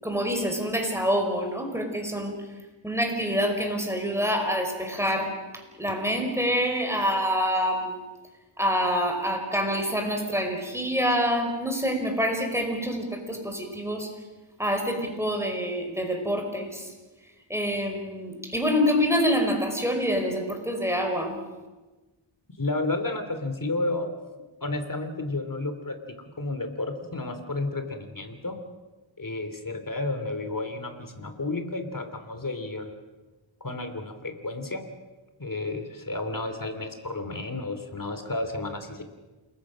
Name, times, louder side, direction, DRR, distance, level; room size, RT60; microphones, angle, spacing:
voice 1, 0.0-2.3 2.8-5.3 5.8-8.0 8.6-14.1 14.6-16.8 17.5-21.4, equal, 5° right, 3 dB, 5.2 m, -26 dB
voice 2, 22.6-24.1 24.6-28.6 29.2-32.9 33.6-34.8 35.4-39.0, left 2 dB, 40° left, 8 dB, 3.1 m, -32 dB
28.5 x 21.0 x 6.4 m, 1.2 s
wide cardioid pair, 65°, 47 cm